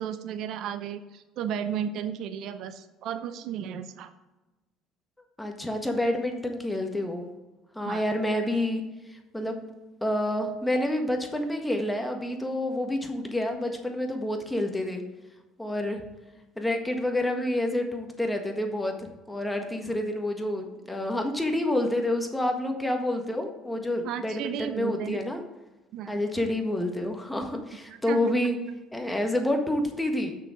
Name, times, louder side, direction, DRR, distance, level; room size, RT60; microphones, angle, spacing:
voice 1, 0.0-4.1 7.9-8.0 24.0-25.2 25.9-26.2 27.9-28.3, right 8 dB, 65° right, 11 dB, 0.6 m, -34 dB
voice 2, 5.4-7.3 7.7-8.8 9.1-9.6 10.0-15.0 15.6-16.0 16.6-25.4 26.1-28.6 28.9-30.3, left 1 dB, 10° left, 4 dB, 1.6 m, -28 dB
6.5 x 6.2 x 5.0 m, 1.1 s
hypercardioid pair, 70°, 0 cm